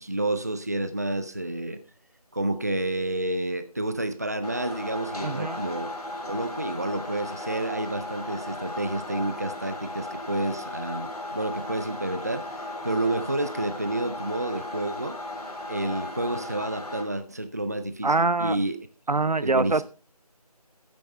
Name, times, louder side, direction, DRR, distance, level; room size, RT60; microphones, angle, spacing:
voice 1, 0.0-1.8 2.3-5.9 6.3-12.4 12.8-15.2 15.7-18.1 18.4-18.8 19.4-19.8, right 1 dB, 25° right, 10 dB, 0.6 m, -29 dB
sound 1, 4.4-17.0, left 2 dB, 70° left, 3.9 m, -36 dB
voice 2, 5.2-5.6 18.0-18.6 19.1-19.8, right 3 dB, 85° right, 17 dB, 0.8 m, -24 dB
14.0 x 8.7 x 3.3 m, 0.35 s
figure-of-eight pair, 170°, 20 cm